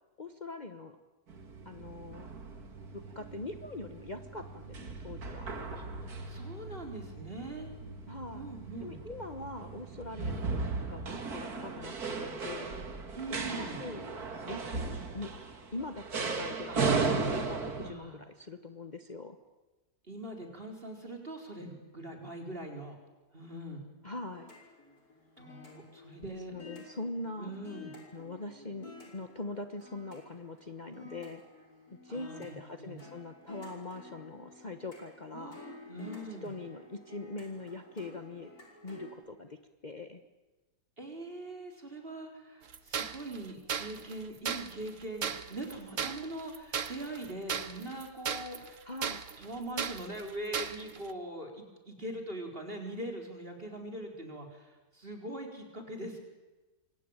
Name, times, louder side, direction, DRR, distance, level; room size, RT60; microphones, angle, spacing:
voice 1, 0.2-1.0 1.6-2.3 2.9-5.5 8.1-8.5 8.8-10.6 10.9-12.8 13.5-14.1 14.5-15.3 15.7-16.8 17.1-19.4 24.0-24.5 26.5-27.6 28.1-31.4 32.0-35.6 36.4-38.5 38.8-40.2 48.8-49.2, left 2 dB, 30° left, 7 dB, 1.3 m, -42 dB
sound 1, 1.3-17.9, right 4 dB, 85° right, 2.7 m, -36 dB
voice 2, 6.3-7.7 8.3-9.0 13.1-13.8 16.7-16.8 17.7-18.2 20.1-22.9 23.3-23.8 25.4-26.5 27.4-27.9 32.1-33.0 35.3-36.5 41.0-48.8 49.4-56.2, right 1 dB, 35° right, 3 dB, 4.7 m, -42 dB
sound 2, 24.3-39.1, left 3 dB, 85° left, 6.2 m, -52 dB
sound 3, 42.7-51.1, right 7 dB, 60° right, 1.5 m, -37 dB
28.0 x 23.0 x 9.0 m, 1.2 s
omnidirectional pair, 1.6 m